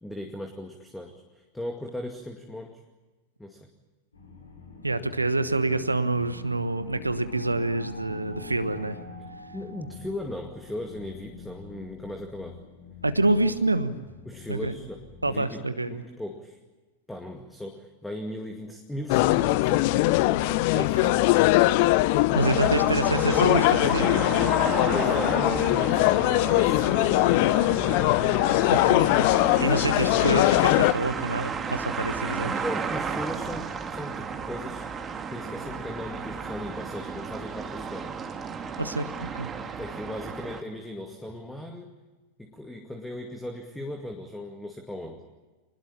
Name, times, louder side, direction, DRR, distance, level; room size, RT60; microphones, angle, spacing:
voice 1, 0.0-2.8 3.4-3.7 9.5-12.6 14.2-16.6 17.1-21.4 24.8-27.9 29.6-29.9 32.5-34.8 35.3-38.1 39.8-41.9 42.4-45.2, left 1 dB, 5° left, 4 dB, 2.2 m, -38 dB
sound 1, 4.1-15.3, left 3 dB, 75° left, 7.2 m, -45 dB
voice 2, 4.8-9.0 13.0-14.0 14.5-14.7 15.2-16.0 20.8-21.1 22.3-24.2 28.7-29.3 29.6-32.5 38.8-39.5, right 2 dB, 80° right, 12 dB, 1.2 m, -27 dB
sound 2, 19.1-30.9, left 18 dB, 45° left, 0.8 m, -21 dB
sound 3, 22.4-40.6, right 5 dB, 20° right, 2.0 m, -34 dB
25.5 x 20.5 x 8.6 m, 1.2 s
figure-of-eight pair, 90°, 0 cm